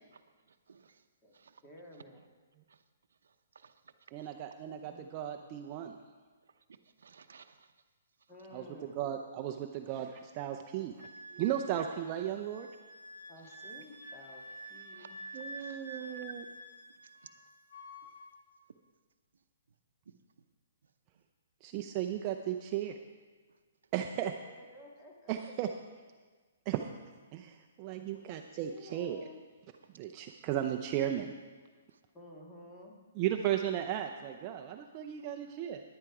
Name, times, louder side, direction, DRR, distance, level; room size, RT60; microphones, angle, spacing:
voice 1, 0.5-1.0 1.3-1.6 2.7-2.8 3.2-4.3 7.0-7.7 13.4-13.5 14.9-16.2 20.1-20.2 30.3-30.4 31.9-32.0 35.2-35.5, right 6 dB, 85° right, 0.7 m, -60 dB
voice 2, 1.6-2.2 4.7-5.1 8.3-9.0 13.3-14.4 14.7-15.2 24.3-25.4 28.0-28.2 28.7-29.4 32.1-32.9, left 1 dB, 15° left, 1.8 m, -53 dB
voice 3, 4.1-6.0 8.5-8.6 9.0-10.9 11.3-12.7 15.3-16.4 21.6-23.0 23.9-24.3 25.3-25.7 26.7-26.9 27.3-29.2 29.9-31.3 33.2-35.8, right 11 dB, 30° right, 0.6 m, -35 dB
Wind instrument woodwind instrument, 11.0-17.4 17.7-18.3, right 1 dB, 85° left, 2.9 m, -48 dB
11.0 x 10.5 x 4.8 m
hypercardioid pair, 160°, 0 cm